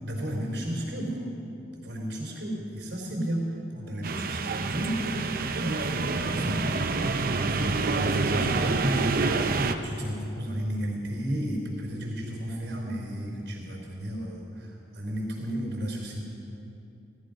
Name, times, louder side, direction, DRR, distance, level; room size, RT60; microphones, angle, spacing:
voice 1, 0.0-1.2 1.8-3.5 3.7-5.2 5.5-5.9 6.3-6.8 7.1-16.3, equal, 70° right, -1 dB, 3.8 m, -33 dB
sound 1, 4.0-9.7, right 3 dB, 55° right, 0.7 m, -27 dB
17.0 x 14.0 x 5.2 m, 2.8 s
head